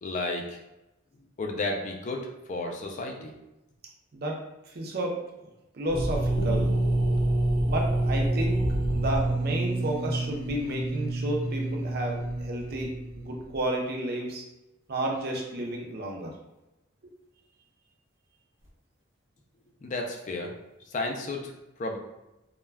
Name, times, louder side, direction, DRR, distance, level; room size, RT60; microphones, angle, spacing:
voice 1, 0.0-0.6 1.4-3.3 19.8-20.5 20.9-21.5 21.8-22.0, left 2 dB, 35° left, 2 dB, 0.3 m, -32 dB
voice 2, 4.7-5.2 5.7-6.8 7.7-8.6 8.9-14.4 14.9-16.3, right 1 dB, 50° right, 0 dB, 0.5 m, -31 dB
sound 1, 5.9-13.6, right 1 dB, 80° right, 0.8 m, -27 dB
sound 2, 6.4-11.4, left 5 dB, 85° left, 0.5 m, -45 dB
2.2 x 2.1 x 3.3 m, 0.94 s
head